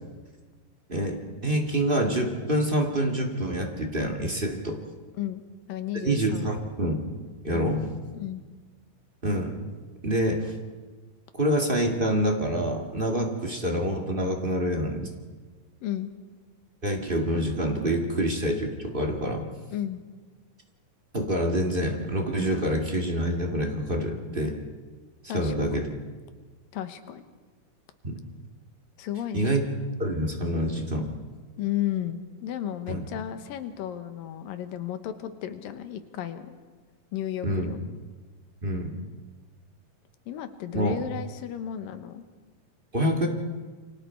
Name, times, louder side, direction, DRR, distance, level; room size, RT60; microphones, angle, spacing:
voice 1, 1.4-4.8 6.0-7.0 7.4-7.8 9.2-9.6 10.0-10.5 11.3-15.1 16.8-19.4 21.1-24.6 25.3-25.9 28.0-28.2 29.3-29.6 30.0-31.1 32.9-33.0 37.4-37.7 38.6-38.9 40.7-41.0 42.9-43.3, right 1 dB, 25° right, 2 dB, 1.4 m, -26 dB
voice 2, 5.7-6.7 7.5-7.7 8.1-8.4 15.8-16.1 19.7-20.0 25.3-25.5 25.8-26.0 26.7-27.3 29.0-29.6 31.6-36.5 37.1-37.8 40.3-42.2, left 11 dB, 80° left, 9 dB, 2.8 m, -33 dB
28.5 x 24.5 x 4.5 m, 1.4 s
omnidirectional pair, 4.0 m